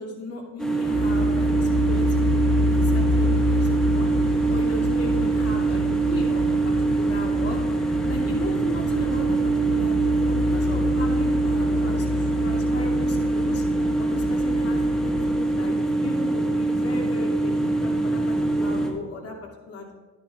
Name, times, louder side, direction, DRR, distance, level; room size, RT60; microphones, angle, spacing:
voice 1, 0.0-2.4 2.6-7.6 8.1-9.4 9.7-13.6 14.0-17.5 17.8-19.9, left 2 dB, 50° left, -1 dB, 2.5 m, -36 dB
sound 1, 0.6-18.9, right 3 dB, ahead, 1.5 m, -23 dB
sound 2, 0.9-15.3, left 4 dB, 80° left, 1.8 m, -28 dB
13.0 x 10.5 x 2.4 m, 1.3 s
cardioid pair, 90°, 30 cm